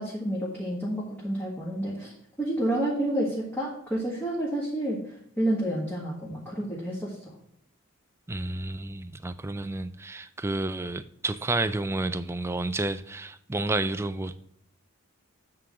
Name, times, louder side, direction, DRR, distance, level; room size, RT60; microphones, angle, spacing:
voice 1, 0.0-2.1 2.4-7.3, right 1 dB, 10° left, 1.7 m, -29 dB
voice 2, 8.3-14.4, right 2 dB, 10° right, 0.3 m, -30 dB
8.6 x 3.8 x 7.0 m
head